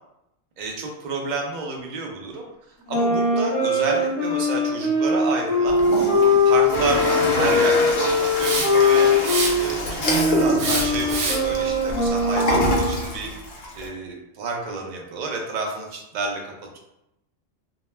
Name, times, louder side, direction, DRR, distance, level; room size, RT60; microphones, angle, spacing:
voice 1, 0.6-2.4 2.9-5.8 6.4-9.1 9.6-13.3 13.7-16.8, right 3 dB, 55° right, 0 dB, 0.5 m, -30 dB
sound 1, 2.9-9.6 10.0-13.0, left 2 dB, 35° left, 0.8 m, -21 dB
Toilet flush, 5.7-13.9, left 1 dB, 65° left, 0.7 m, -27 dB
Hiss, 8.4-8.9 9.2-9.9 10.6-11.6, right 3 dB, 85° right, 0.9 m, -26 dB
2.2 x 2.1 x 3.1 m, 0.85 s
omnidirectional pair, 1.2 m